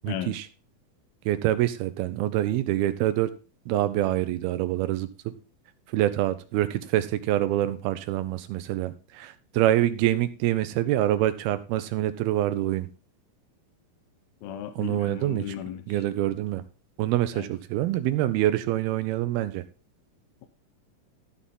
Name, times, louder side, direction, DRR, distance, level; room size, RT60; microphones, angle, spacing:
voice 1, 0.0-0.5 1.3-3.3 3.7-5.3 5.9-12.9 14.8-15.6 15.9-16.6 17.0-19.6, right 13 dB, 85° right, 12 dB, 2.7 m, -26 dB
voice 2, 14.4-15.8 17.3-17.5, left 10 dB, 80° left, 9 dB, 2.7 m, -35 dB
13.5 x 6.3 x 3.7 m, 0.32 s
omnidirectional pair, 4.3 m